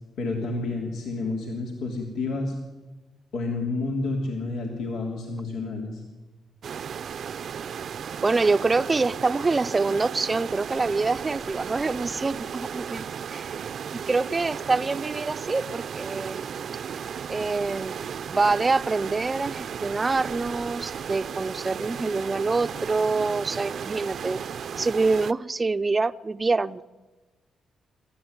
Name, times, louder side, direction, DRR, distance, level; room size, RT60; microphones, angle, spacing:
voice 1, 0.2-2.5 3.3-6.0, left 3 dB, 85° left, 0 dB, 3.3 m, -30 dB
sound 1, 6.6-25.3, right 7 dB, 65° right, 0.7 m, -35 dB
voice 2, 8.2-13.6 13.9-16.5 17.3-18.0 18.3-24.4 24.8-26.8, right 3 dB, 25° right, 11 dB, 0.6 m, -26 dB
25.0 x 15.0 x 9.7 m, 1.2 s
cardioid pair, 95°, 0 cm